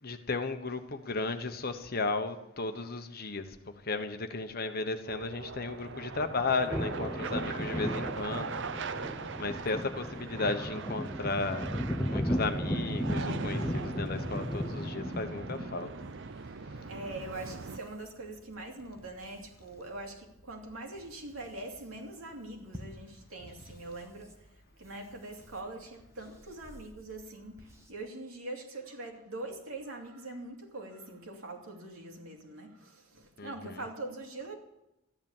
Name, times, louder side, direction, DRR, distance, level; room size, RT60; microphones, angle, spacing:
voice 1, 0.0-11.7 12.1-15.9 33.4-33.8, left 3 dB, 45° left, 8 dB, 1.1 m, -35 dB
sound 1, 5.1-17.8, right 4 dB, 60° right, 0.7 m, -40 dB
sound 2, 5.7-16.1, equal, 10° left, 0.7 m, -35 dB
voice 2, 7.4-7.8 16.9-24.3 24.8-34.5, right 2 dB, 90° right, 1 dB, 2.7 m, -43 dB
sound 3, 16.7-27.9, equal, 15° right, 1.5 m, -55 dB
13.5 x 10.5 x 7.3 m, 0.89 s
head